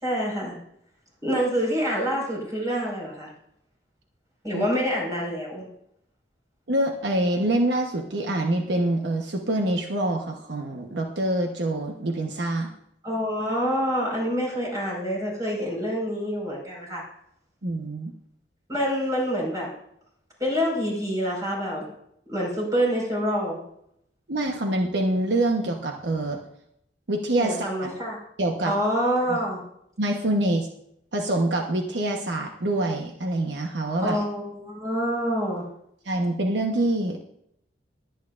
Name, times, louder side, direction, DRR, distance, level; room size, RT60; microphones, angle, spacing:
voice 1, 0.0-0.5 1.2-3.3 4.4-5.6 13.0-17.0 18.7-19.7 20.4-21.9 22.3-23.6 27.4-28.2 28.6-29.6 34.0-35.6, equal, 20° right, -3 dB, 5.1 m, -26 dB
voice 2, 6.7-12.7 17.6-18.1 24.3-26.4 27.1-27.9 28.4-28.7 29.3-29.4 30.0-30.7 31.1-34.2 36.0-37.2, right 1 dB, 75° right, 2 dB, 1.1 m, -25 dB
21.5 x 9.2 x 2.5 m, 0.74 s
head